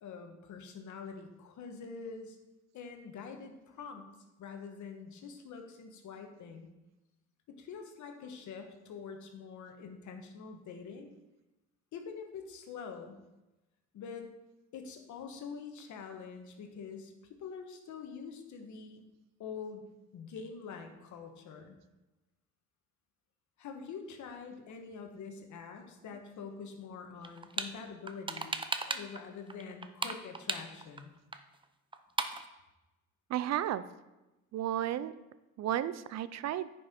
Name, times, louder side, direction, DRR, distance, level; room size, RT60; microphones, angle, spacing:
voice 1, 0.0-2.4 2.7-4.1 4.4-6.7 7.5-11.1 11.9-13.2 13.9-14.3 14.7-19.0 19.4-21.8 23.6-28.5 28.9-31.1, left 5 dB, 75° left, 5 dB, 1.3 m, -45 dB
sound 1, 27.2-27.7 28.1-29.2 29.5-31.0 31.3-31.4 31.6-31.7 31.9-32.4, right 3 dB, 15° right, 0.6 m, -35 dB
voice 2, 33.3-33.8 34.5-35.1 35.6-36.7, right 12 dB, 60° right, 15 dB, 0.5 m, -33 dB
9.9 x 5.5 x 4.3 m, 1.0 s
cardioid pair, 90°, 30 cm